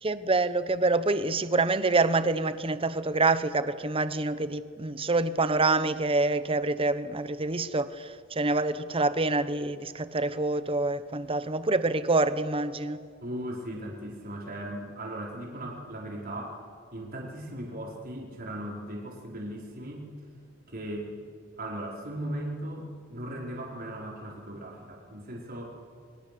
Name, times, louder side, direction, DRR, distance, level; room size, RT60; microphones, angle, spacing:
voice 1, 0.0-13.1, right 3 dB, 30° right, 0.9 m, -26 dB
voice 2, 13.2-16.6 16.9-20.1 20.7-21.1 21.6-25.8, right 1 dB, 50° right, 4.5 m, -38 dB
29.5 x 23.5 x 6.9 m
head